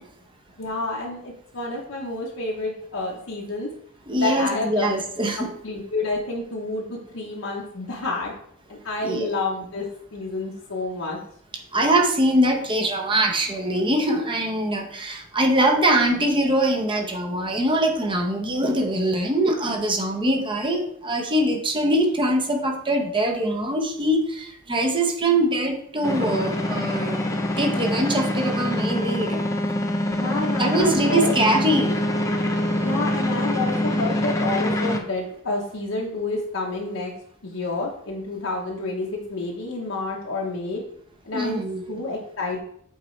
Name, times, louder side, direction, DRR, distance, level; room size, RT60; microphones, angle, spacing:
voice 1, 0.6-3.7 4.1-4.9 5.4-8.3 8.7-9.8 10.1-11.2 30.1-31.3 32.8-37.1 37.4-40.8 41.2-41.6 41.9-42.6, left 2 dB, 70° left, -2 dB, 0.9 m, -29 dB
voice 2, 4.1-5.5 9.0-9.3 11.7-27.2 27.6-29.4 30.6-32.0 41.3-42.0, right 1 dB, 25° right, 4 dB, 0.8 m, -23 dB
sound 1, 26.0-35.0, left 1 dB, 15° left, 0.7 m, -25 dB
8.0 x 4.1 x 3.2 m, 0.67 s
head